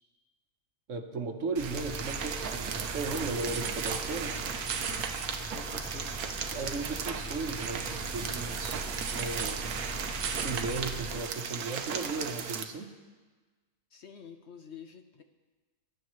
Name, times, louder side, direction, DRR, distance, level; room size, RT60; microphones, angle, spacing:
voice 1, 0.9-4.4 6.5-8.8 9.1-9.8 10.3-12.9, right 3 dB, 60° right, 5 dB, 1.3 m, -36 dB
sound 1, 1.6-11.2, right 1 dB, 10° left, 2.4 m, -41 dB
sound 2, 1.6-12.6, right 6 dB, 80° right, 1.3 m, -35 dB
voice 2, 5.5-6.3 6.6-6.8 13.9-15.2, left 7 dB, 60° left, 6 dB, 0.8 m, -48 dB
22.0 x 10.5 x 3.1 m, 1.4 s
omnidirectional pair, 1.5 m